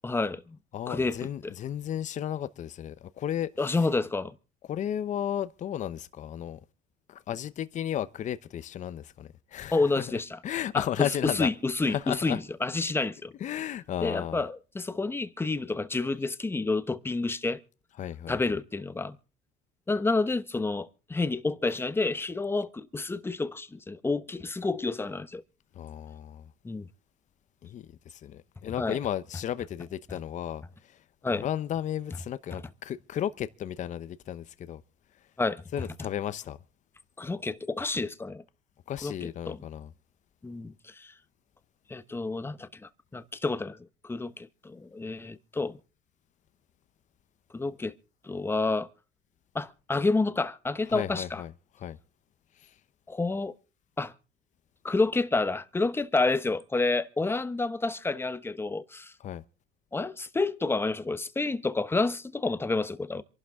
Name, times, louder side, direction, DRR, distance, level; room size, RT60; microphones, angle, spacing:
voice 1, 0.0-0.6 0.9-1.5 3.6-4.3 9.7-10.4 10.7-13.3 14.0-17.6 18.3-19.2 19.9-25.4 26.6-26.9 28.8-29.0 31.2-31.4 35.4-35.6 37.2-38.4 39.0-39.6 40.4-41.1 41.9-43.8 44.0-45.8 47.5-47.9 48.2-48.9 49.5-51.4 53.1-53.6 54.0-54.1 54.8-59.1 59.9-63.2, left 3 dB, 15° left, 0.9 m, -29 dB
voice 2, 0.7-3.8 4.7-6.6 7.1-11.5 11.9-12.4 13.4-14.4 18.0-18.4 25.7-26.5 27.6-31.0 31.3-34.8 35.7-36.6 38.9-39.9 50.9-51.5 51.8-52.0 52.6-52.7 59.2-59.4, left 10 dB, 45° left, 0.8 m, -34 dB
26.5 x 11.5 x 3.6 m
supercardioid pair, 100°, 18 cm